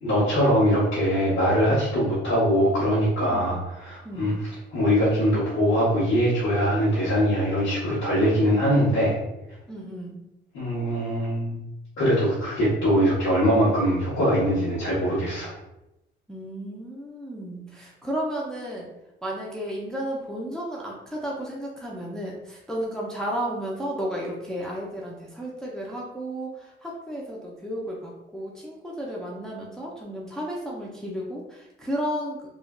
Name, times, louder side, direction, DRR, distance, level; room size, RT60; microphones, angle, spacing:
voice 1, 0.0-4.3 4.7-9.2 10.5-11.6 12.0-15.5, equal, 80° left, -10 dB, 1.0 m, -22 dB
voice 2, 4.0-4.4 9.7-10.2 16.3-18.9 19.2-32.4, equal, 5° left, -4 dB, 0.5 m, -33 dB
3.2 x 2.4 x 2.2 m, 0.91 s
cardioid pair, 90°, 20 cm